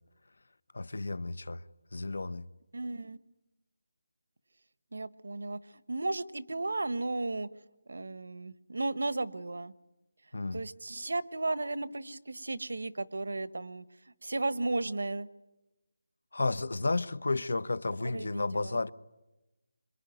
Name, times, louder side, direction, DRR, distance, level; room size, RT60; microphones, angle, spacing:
voice 1, 0.7-1.6 1.9-2.5 10.3-10.6 16.3-18.9, left 3 dB, 65° left, 1.0 m, -32 dB
voice 2, 2.7-3.2 4.9-5.6 5.9-7.5 7.9-9.7 10.5-13.8 14.2-15.3 18.1-18.8, right 2 dB, 75° right, 1.3 m, -34 dB
26.0 x 24.0 x 9.4 m
figure-of-eight pair, 175°, 0 cm